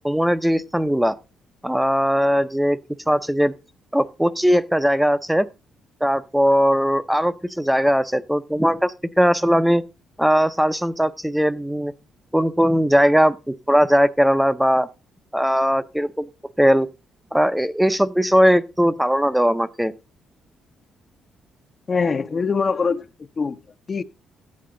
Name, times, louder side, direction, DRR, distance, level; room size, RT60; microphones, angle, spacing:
voice 1, 0.0-1.2 1.6-2.8 3.1-3.5 3.9-5.5 6.0-9.8 10.2-11.9 12.3-14.9 15.3-16.3 16.6-16.9 17.3-19.9, equal, 5° right, 0.5 m, -19 dB
voice 2, 21.9-23.1 23.4-23.6 23.9-24.0, left 5 dB, 40° left, 0.6 m, -22 dB
13.0 x 8.6 x 3.7 m
cardioid pair, 90°, 0 cm